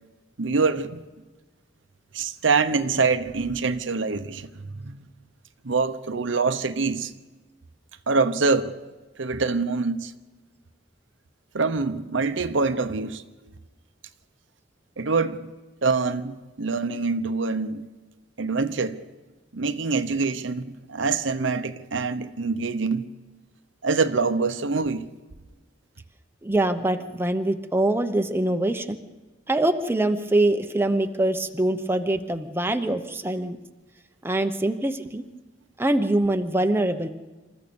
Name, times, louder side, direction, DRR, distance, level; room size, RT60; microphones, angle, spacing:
voice 1, 0.4-1.1 2.1-5.1 5.6-7.1 8.1-8.7 9.2-10.1 11.5-13.2 15.0-15.5 15.8-17.9 18.4-19.0 19.5-23.1 23.8-25.1, right 4 dB, 75° right, 0.9 m, -25 dB
voice 2, 26.4-29.0 29.5-33.6 34.2-35.2 35.8-37.1, right 1 dB, 10° right, 0.8 m, -24 dB
27.0 x 14.5 x 7.0 m
head